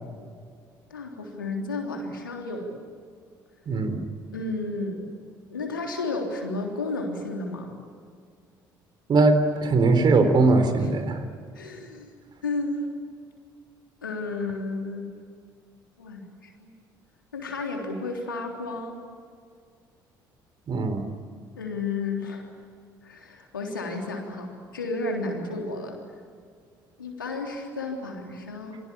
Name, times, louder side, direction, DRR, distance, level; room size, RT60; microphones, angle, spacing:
voice 1, 0.9-2.7 4.3-5.0 5.5-7.7 10.8-10.9 11.5-12.1 12.4-12.9 14.0-15.1 16.0-16.2 16.6-16.7 17.3-19.0 21.6-22.5 23.0-26.0 27.0-28.8, left 3 dB, 85° left, 2 dB, 3.5 m, -32 dB
voice 2, 3.7-4.0 9.1-11.2 20.7-21.0, right 3 dB, 45° right, 8 dB, 3.8 m, -20 dB
28.0 x 23.5 x 8.8 m, 2.1 s
figure-of-eight pair, 50°, 11 cm